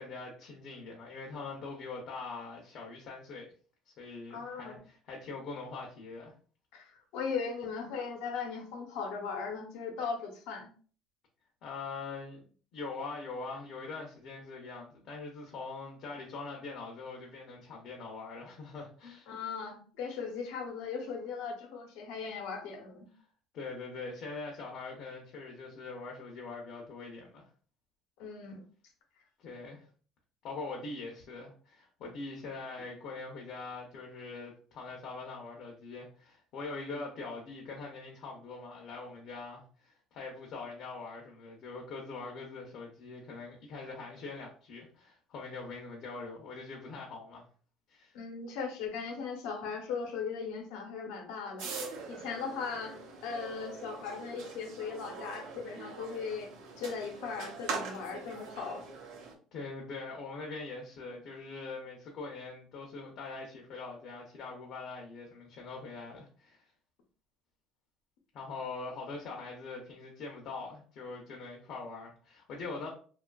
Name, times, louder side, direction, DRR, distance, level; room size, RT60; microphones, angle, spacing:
voice 1, 0.0-3.5 3.9-6.3 11.6-12.4 12.7-19.3 23.5-27.4 29.4-29.8 30.4-47.5 47.9-48.1 59.5-66.6 68.3-72.9, left 3 dB, 50° left, 0 dB, 0.5 m, -43 dB
voice 2, 4.3-4.8 6.7-10.7 19.3-23.1 28.2-28.6 48.1-51.7 52.1-52.9 53.2-56.5 56.8-58.8, left 5 dB, 85° left, 2 dB, 0.7 m, -38 dB
sound 1, 51.6-59.3, right 4 dB, 85° right, 0.6 m, -43 dB
2.6 x 2.3 x 2.2 m, 0.42 s
cardioid pair, 165°, 0 cm